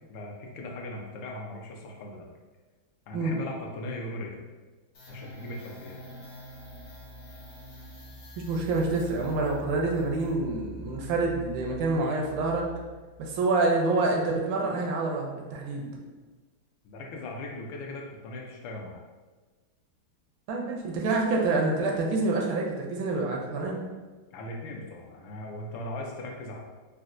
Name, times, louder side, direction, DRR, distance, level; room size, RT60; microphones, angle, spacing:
voice 1, 0.1-2.3 3.1-4.4 5.1-6.0 16.8-19.0 24.3-26.6, left 1 dB, 80° left, 0 dB, 1.3 m, -39 dB
sound 1, 4.9-13.4, equal, 50° left, 0.8 m, -45 dB
voice 2, 8.5-12.7 13.2-15.9 20.5-23.8, right 3 dB, 75° right, 0 dB, 1.3 m, -27 dB
4.1 x 2.1 x 2.5 m, 1.3 s
omnidirectional pair, 2.2 m